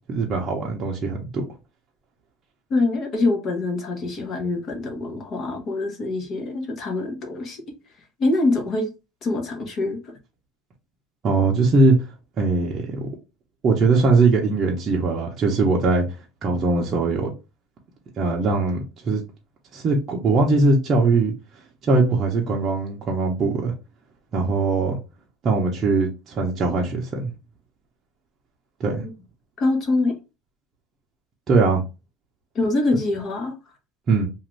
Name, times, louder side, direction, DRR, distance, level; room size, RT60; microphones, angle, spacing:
voice 1, 0.1-1.4 11.2-11.9 12.4-13.1 13.6-16.0 16.4-17.3 18.2-19.2 19.7-21.3 21.8-23.7 24.3-25.0 25.4-27.3 28.8-29.0 31.5-31.8 34.1-34.3, right 3 dB, 35° right, 0.7 m, -20 dB
voice 2, 2.7-7.6 8.2-8.9 9.2-10.0 28.9-29.0 29.6-30.1 32.5-33.5, left 2 dB, 40° left, 0.9 m, -24 dB
2.5 x 2.5 x 3.1 m
supercardioid pair, 130°, 0 cm